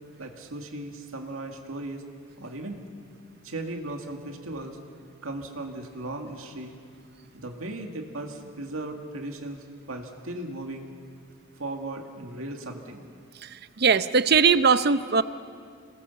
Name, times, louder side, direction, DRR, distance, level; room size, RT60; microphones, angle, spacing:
voice 1, 0.2-2.0 2.4-2.8 3.4-4.8 5.2-6.7 7.3-10.9 11.6-13.0, right 2 dB, 90° right, 3 dB, 2.1 m, -37 dB
voice 2, 13.8-15.2, right 5 dB, 50° right, 13 dB, 0.7 m, -20 dB
27.0 x 20.0 x 7.1 m, 2.2 s
head